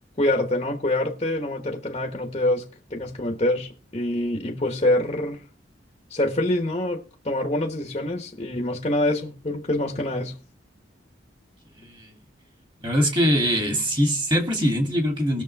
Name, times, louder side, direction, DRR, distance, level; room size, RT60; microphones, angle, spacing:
voice 1, 0.2-5.4 6.1-10.4, left 1 dB, 30° left, 1.0 m, -25 dB
voice 2, 11.7-12.1 12.8-15.4, equal, 25° right, 2.7 m, -23 dB
19.5 x 6.7 x 3.4 m
head